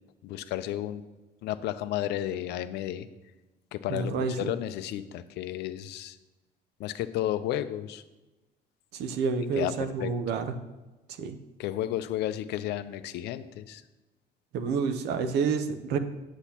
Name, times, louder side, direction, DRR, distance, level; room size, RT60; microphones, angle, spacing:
voice 1, 0.2-1.0 1.4-3.1 3.7-6.2 6.8-8.0 9.6-9.7 10.0-10.1 11.6-13.8, left 13 dB, 80° left, 13 dB, 0.5 m, -32 dB
voice 2, 3.9-4.3 8.9-10.4 11.2-11.4 14.5-16.0, right 5 dB, 80° right, 10 dB, 0.7 m, -29 dB
8.2 x 7.9 x 2.9 m, 1.1 s
cardioid pair, 110°, 17 cm